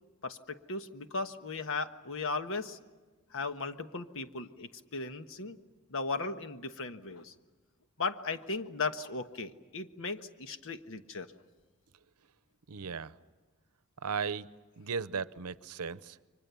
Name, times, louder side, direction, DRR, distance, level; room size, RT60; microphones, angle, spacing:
voice 1, 0.2-2.8 3.3-5.6 5.9-7.3 8.0-11.3, left 3 dB, 65° left, 9 dB, 1.3 m, -37 dB
voice 2, 12.7-13.1 14.0-14.5 14.8-16.1, right 5 dB, 85° right, 16 dB, 0.8 m, -36 dB
29.5 x 24.0 x 7.0 m, 1.3 s
head